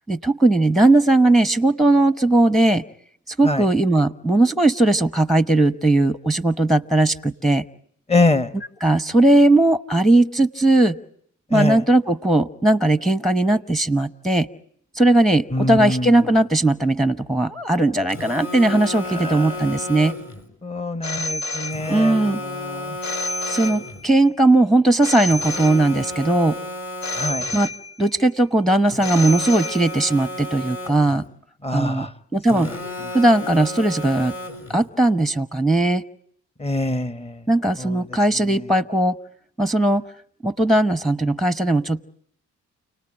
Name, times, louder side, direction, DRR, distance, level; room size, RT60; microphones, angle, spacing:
voice 1, 0.1-2.8 3.3-7.6 8.8-11.0 11.5-14.5 15.0-20.1 21.9-22.4 23.5-26.6 27.5-27.7 28.0-31.2 31.7-32.1 32.3-32.7 33.1-34.3 34.7-36.0 37.5-39.2 39.6-40.0 40.4-42.0, right 2 dB, ahead, 13 dB, 1.0 m, -18 dB
voice 2, 8.1-8.5 11.5-11.8 15.5-16.1 19.1-19.5 20.6-23.0 27.2-27.4 31.6-32.1 32.5-32.7 36.6-37.4 37.8-38.0, left 2 dB, 20° left, 13 dB, 1.4 m, -24 dB
Telephone, 18.1-20.4 21.7-24.1 25.3-27.6 28.9-31.3 32.5-34.8, left 2 dB, 45° left, 6.1 m, -33 dB
Telephone 2, 21.0-22.3 23.0-24.3 25.0-26.3 27.0-28.3 29.0-30.3, left 2 dB, 65° left, 1.2 m, -30 dB
29.5 x 19.0 x 8.9 m, 0.68 s
cardioid pair, 90°, 30 cm